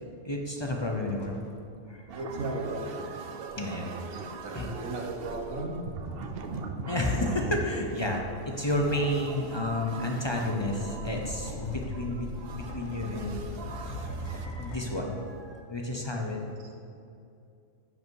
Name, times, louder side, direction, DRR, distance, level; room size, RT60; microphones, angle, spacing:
voice 1, 0.2-1.4 1.9-2.0 3.6-3.9 4.5-4.7 6.9-13.5 13.8-16.4, left 1 dB, 25° left, 0 dB, 0.6 m, -31 dB
sound 1, 0.6-1.9 3.1-15.4, left 2 dB, 70° left, 1.2 m, -44 dB
sound 2, 2.1-14.5, right 4 dB, 55° right, 0.7 m, -40 dB
voice 2, 2.1-3.2 4.1-5.8 16.4-16.5, right 2 dB, 75° right, 1 dB, 1.5 m, -36 dB
10.5 x 5.6 x 4.6 m, 2.6 s
omnidirectional pair, 1.4 m